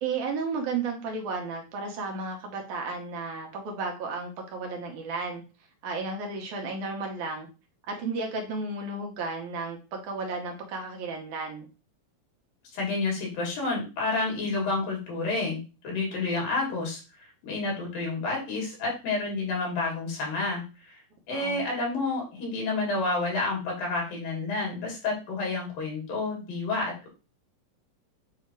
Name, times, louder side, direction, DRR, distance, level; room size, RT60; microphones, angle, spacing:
voice 1, 0.0-5.4 5.8-7.5 7.9-11.7 21.3-21.6, right 4 dB, 70° right, 1 dB, 2.2 m, -33 dB
voice 2, 12.7-15.6 15.8-17.0 17.4-20.6 20.9-21.0 21.3-27.1, left 3 dB, 80° left, -2 dB, 4.1 m, -29 dB
7.4 x 2.8 x 4.5 m, 0.32 s
omnidirectional pair, 4.0 m